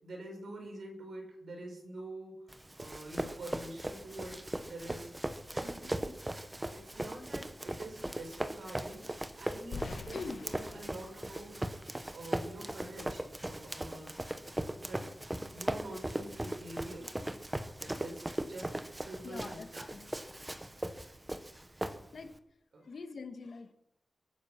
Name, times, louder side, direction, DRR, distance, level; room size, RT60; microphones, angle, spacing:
voice 1, 0.0-2.4 2.8-6.2 6.7-9.0 9.3-14.3 14.8-15.0 15.5-17.1 17.8-19.9 22.7-22.9, right 1 dB, 70° right, 0 dB, 6.4 m, -46 dB
Run, 2.5-22.4, right 1 dB, 10° right, 0.9 m, -39 dB
sound 1, 9.7-12.7, left 4 dB, 80° left, 1.2 m, -47 dB
voice 2, 10.1-10.5 19.2-20.1 22.1-22.3 22.8-23.7, left 4 dB, 55° left, 7 dB, 1.8 m, -43 dB
23.0 x 9.8 x 6.0 m, 0.81 s
wide cardioid pair, 175°, 0 cm